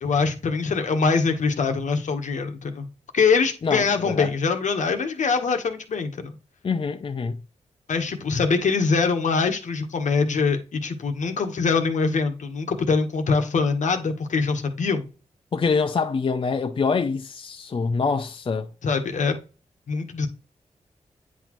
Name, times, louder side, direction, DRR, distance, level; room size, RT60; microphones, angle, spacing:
voice 1, 0.0-2.9 3.1-6.4 7.9-15.1 18.8-19.4 19.9-20.3, left 4 dB, 75° left, 1.2 m, -23 dB
voice 2, 3.6-4.3 6.6-7.4 15.5-18.7, left 4 dB, 45° left, 0.5 m, -25 dB
9.4 x 4.2 x 3.0 m
wide cardioid pair, 100°, 13 cm